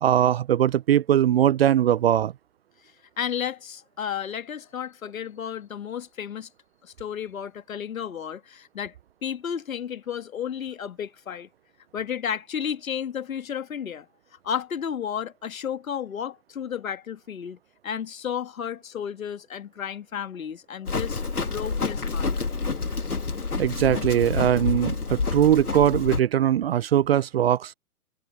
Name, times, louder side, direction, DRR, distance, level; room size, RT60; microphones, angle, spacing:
voice 1, 0.0-2.3 23.6-27.7, right 11 dB, 45° right, 0.5 m, -21 dB
voice 2, 3.2-6.5 6.8-8.9 9.2-11.5 11.9-14.1 14.4-17.6 17.8-22.3, left 8 dB, 65° left, 1.8 m, -32 dB
Livestock farm animals working animals, 20.9-26.2, left 4 dB, 85° left, 2.0 m, -28 dB
figure-of-eight pair, 120°, 44 cm